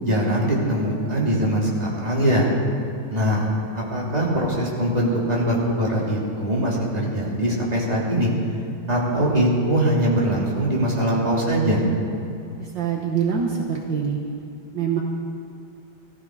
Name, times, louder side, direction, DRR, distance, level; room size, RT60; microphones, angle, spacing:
voice 1, 0.0-2.5 3.1-3.5 3.7-8.3 8.9-11.8, right 1 dB, 20° right, -5 dB, 3.1 m, -22 dB
voice 2, 12.6-14.2 14.7-15.0, right 7 dB, 70° right, 0 dB, 1.8 m, -24 dB
19.0 x 14.5 x 4.8 m, 2.6 s
omnidirectional pair, 2.2 m